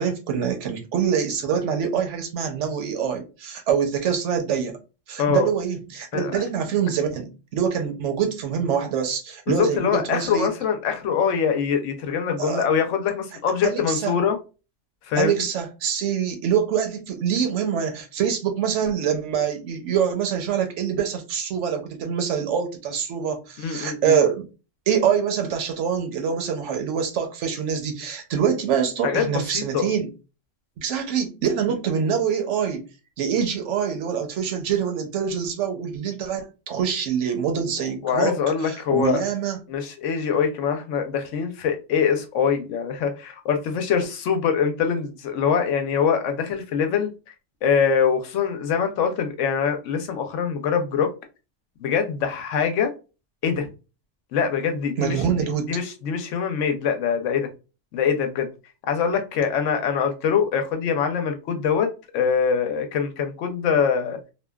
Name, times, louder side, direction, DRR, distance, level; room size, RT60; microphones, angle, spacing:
voice 1, 0.0-4.8 5.1-10.5 12.4-12.6 13.6-14.1 15.1-24.5 24.9-30.1 30.8-32.9 33.2-38.3 38.6-39.6 55.0-55.7, right 7 dB, 70° right, 0.9 m, -25 dB
voice 2, 5.2-5.5 6.1-6.4 9.5-14.4 15.1-15.4 23.6-24.1 29.0-29.9 37.8-39.2 39.7-47.1 47.6-51.1 51.8-52.9 53.4-53.7 54.3-55.2 55.7-57.5 57.9-58.5 58.9-61.9 62.1-64.2, left 7 dB, 75° left, 0.9 m, -23 dB
2.7 x 2.2 x 2.2 m
omnidirectional pair, 1.3 m